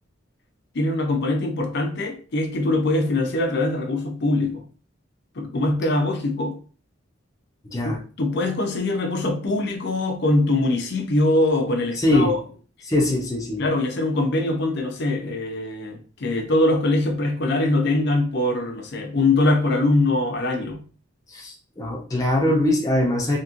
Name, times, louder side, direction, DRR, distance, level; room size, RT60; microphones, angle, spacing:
voice 1, 0.7-4.6 5.4-6.6 7.8-12.4 13.6-20.8, left 2 dB, 60° left, 0.6 m, -22 dB
voice 2, 12.0-12.4 12.8-13.6 21.3-23.4, left 1 dB, 15° left, 0.6 m, -22 dB
2.9 x 2.8 x 2.5 m
head